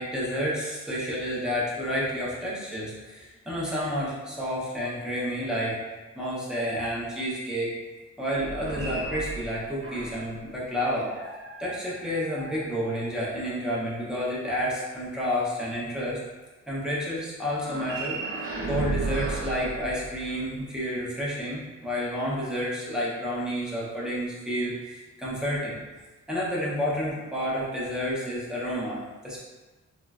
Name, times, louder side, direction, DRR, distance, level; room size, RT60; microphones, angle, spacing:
voice 1, 0.0-5.8 6.1-7.7 8.2-11.1 11.6-16.2 16.7-18.2 18.7-25.8 26.3-29.4, equal, ahead, -7 dB, 0.6 m, -30 dB
sound 1, 8.3-10.3 11.0-13.4 17.5-20.6, right 3 dB, 45° right, 0.6 m, -35 dB
3.6 x 2.0 x 2.3 m, 1.2 s
wide cardioid pair, 150°, 31 cm